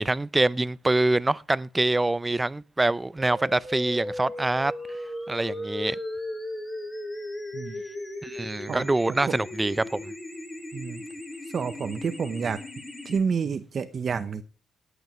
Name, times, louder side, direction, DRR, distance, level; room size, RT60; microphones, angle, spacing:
voice 1, 0.0-4.7 5.3-6.0 8.2-10.1, right 2 dB, 15° right, 0.5 m, -25 dB
sound 1, 3.2-13.2, left 1 dB, 15° left, 5.3 m, -36 dB
voice 2, 10.7-11.0 11.5-12.6 13.0-14.4, right 6 dB, 50° right, 0.8 m, -29 dB
19.0 x 8.1 x 3.1 m
cardioid pair, 90°, 0 cm